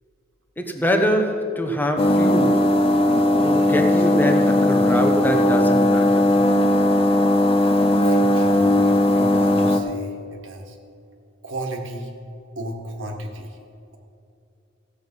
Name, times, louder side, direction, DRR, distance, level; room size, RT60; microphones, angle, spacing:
voice 1, 0.6-2.8 3.4-6.3, equal, 10° left, 4 dB, 1.0 m, -24 dB
sound 1, 2.0-9.8, left 1 dB, 30° left, 0.5 m, -18 dB
voice 2, 7.6-10.8 11.4-12.1 12.5-13.6, right 1 dB, 80° right, 2 dB, 1.6 m, -34 dB
15.5 x 7.7 x 5.5 m, 2.6 s
head